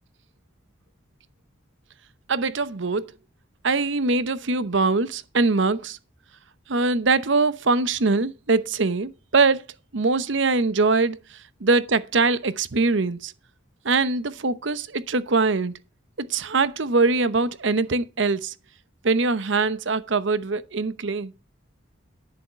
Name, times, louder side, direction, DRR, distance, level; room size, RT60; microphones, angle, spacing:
voice 1, 2.3-3.1 3.6-6.0 6.7-9.6 9.9-11.2 11.6-13.3 13.8-15.7 16.2-18.5 19.0-21.3, right 3 dB, 65° right, 0.8 m, -22 dB
10.5 x 7.1 x 5.6 m
head